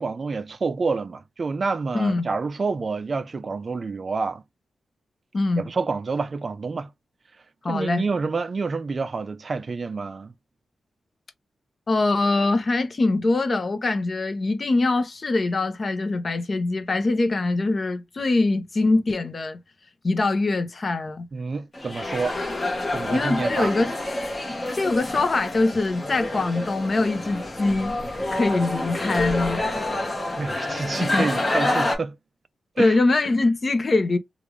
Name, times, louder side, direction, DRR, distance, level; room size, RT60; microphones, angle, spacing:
voice 1, 0.0-4.4 5.6-6.9 7.7-10.3 21.3-22.4 22.9-23.7 30.4-32.2 32.8-33.0, right 4 dB, 45° right, 0.4 m, -28 dB
voice 2, 1.9-2.3 5.3-5.7 7.6-8.0 11.9-19.6 20.0-21.3 23.1-23.9 24.7-28.0 28.3-29.6 30.9-31.3 32.8-34.2, left 2 dB, 40° left, 0.8 m, -23 dB
sound 1, 21.7-32.0, left 1 dB, 20° left, 1.4 m, -28 dB
3.4 x 2.5 x 3.1 m
cardioid pair, 95°, 0 cm